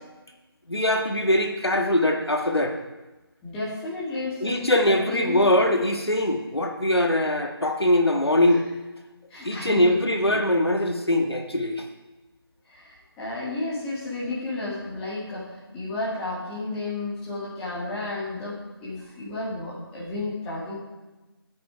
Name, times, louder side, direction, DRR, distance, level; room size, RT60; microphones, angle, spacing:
voice 1, 0.7-2.8 4.4-8.6 9.4-11.8, left 1 dB, 80° left, 3 dB, 1.8 m, -22 dB
voice 2, 3.4-4.6 4.9-5.6 9.3-10.0 10.2-10.4 12.7-15.5 15.7-20.8, left 2 dB, 5° left, -9 dB, 2.0 m, -32 dB
14.0 x 8.6 x 4.6 m, 1.1 s
figure-of-eight pair, 165°, 13 cm